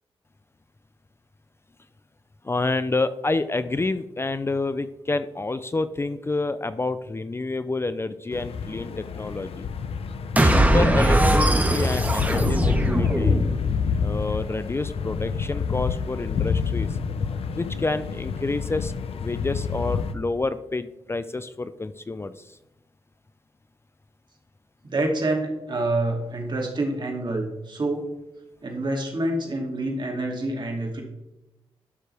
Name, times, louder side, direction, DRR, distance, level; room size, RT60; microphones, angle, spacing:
voice 1, 2.4-9.7 10.4-13.4 14.0-16.9 17.5-22.6, left 3 dB, 25° left, 13 dB, 0.5 m, -28 dB
sound 1, 8.3-20.1, left 6 dB, 80° left, 0.7 m, -28 dB
sound 2, 10.4-13.7, right 1 dB, 15° right, 1.3 m, -20 dB
voice 2, 24.8-28.1 28.6-31.0, right 2 dB, 50° right, 1 dB, 2.5 m, -27 dB
12.0 x 6.3 x 3.4 m, 0.93 s
cardioid pair, 65°, 10 cm